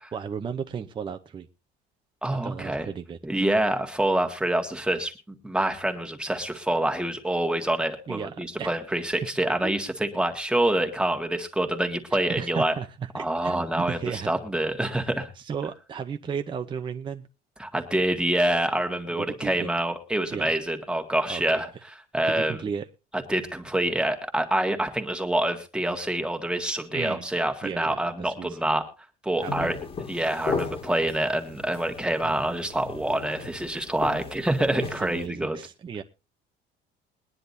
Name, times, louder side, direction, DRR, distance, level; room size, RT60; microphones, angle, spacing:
voice 1, 0.1-1.5 2.3-3.2 8.1-8.7 9.2-9.3 9.6-9.7 12.4-14.3 15.4-17.3 19.1-19.7 20.3-20.5 21.3-21.6 22.3-22.9 26.9-27.3 27.6-28.6 29.4-29.7 32.2-32.4 35.0-36.0, right 6 dB, 25° right, 0.7 m, -34 dB
voice 2, 2.2-2.9 3.2-12.7 13.1-15.3 17.6-21.7 22.1-22.7 23.3-28.8 29.2-29.8 30.1-35.6, right 1 dB, 5° right, 1.7 m, -26 dB
sound 1, 29.4-35.3, left 4 dB, 30° left, 1.9 m, -36 dB
22.0 x 10.0 x 2.7 m
cardioid pair, 145°, 20 cm